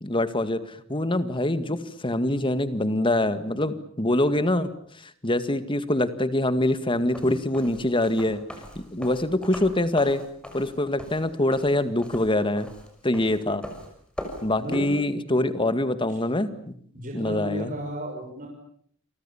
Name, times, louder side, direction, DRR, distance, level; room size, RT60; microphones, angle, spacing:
voice 1, 0.0-4.7 5.0-8.4 8.8-10.2 10.5-12.7 13.0-13.6 14.4-16.7 17.1-17.7, left 1 dB, 25° left, 12 dB, 1.9 m, -24 dB
sound 1, 7.0-14.8, equal, 5° left, 6.1 m, -41 dB
voice 2, 14.6-14.9 16.1-16.2 16.9-18.5, equal, 45° right, 0 dB, 6.3 m, -34 dB
29.5 x 24.0 x 7.2 m, 0.63 s
head